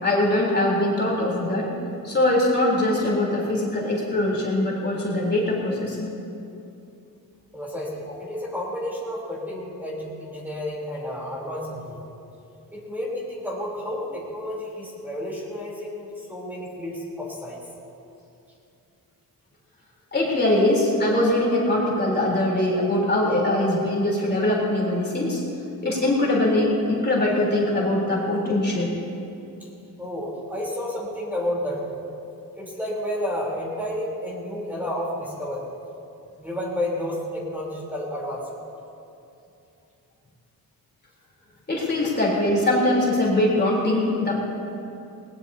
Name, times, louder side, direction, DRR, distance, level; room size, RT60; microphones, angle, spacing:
voice 1, 0.0-1.7 2.0-6.1 20.1-25.4 25.8-28.9 41.7-44.4, left 1 dB, 25° left, -4 dB, 3.7 m, -22 dB
voice 2, 7.5-12.0 12.7-17.6 30.0-32.0 32.5-35.7 36.4-38.5, left 1 dB, 5° right, -5 dB, 3.6 m, -31 dB
20.0 x 19.5 x 2.8 m, 2.8 s
cardioid pair, 115°, 37 cm